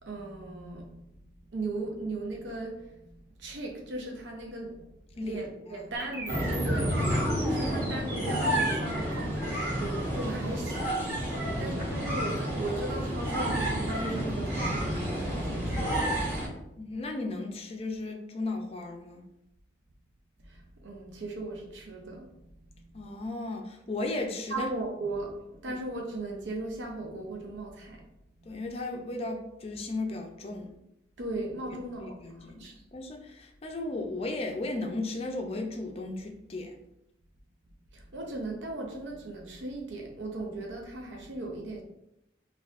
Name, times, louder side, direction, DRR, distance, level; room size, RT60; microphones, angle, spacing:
voice 1, 0.0-1.2 1.5-3.0 3.4-4.8 5.2-7.0 7.4-11.2 11.6-16.6 20.4-22.4 24.5-28.0 31.2-32.7 37.9-41.8, right 2 dB, 70° right, 0.6 m, -37 dB
sound 1, 5.9-13.9, right 1 dB, 55° right, 1.1 m, -42 dB
sound 2, 6.3-16.5, equal, 15° right, 1.2 m, -30 dB
voice 2, 11.4-11.7 16.8-19.2 22.9-24.7 25.7-25.8 28.5-30.7 32.0-32.7 32.9-36.7, left 2 dB, 30° left, 0.4 m, -35 dB
4.4 x 2.3 x 2.4 m
head